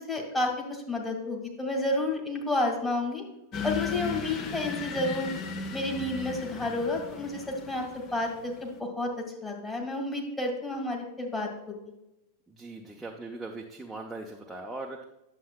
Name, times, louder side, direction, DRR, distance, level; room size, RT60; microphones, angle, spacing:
voice 1, 0.0-3.2 3.6-5.3 5.7-11.5, left 2 dB, 10° left, -1 dB, 1.7 m, -30 dB
sound 1, 3.5-8.8, left 6 dB, 35° left, 0.7 m, -37 dB
voice 2, 12.5-15.0, right 2 dB, 5° right, -1 dB, 0.7 m, -40 dB
9.2 x 7.0 x 2.2 m, 0.92 s
figure-of-eight pair, 90°, 0 cm